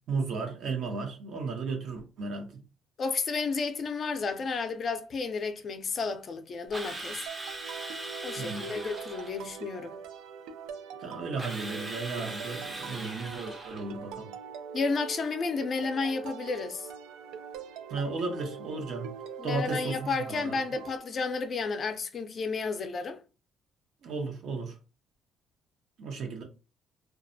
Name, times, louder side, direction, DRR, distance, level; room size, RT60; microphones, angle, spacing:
voice 1, 0.1-2.6 8.4-8.7 11.0-14.3 17.9-19.1 19.4-20.6 24.0-24.7 26.0-26.4, right 4 dB, 65° right, 0.8 m, -34 dB
voice 2, 3.0-7.2 8.2-10.0 14.7-16.9 19.4-23.2, left 4 dB, 45° left, 0.4 m, -32 dB
Drill, 6.7-9.4 11.4-13.9, right 2 dB, 25° right, 0.6 m, -40 dB
sound 1, 7.3-21.0, right 6 dB, 90° right, 0.3 m, -43 dB
2.3 x 2.1 x 2.6 m
cardioid pair, 105°, 0 cm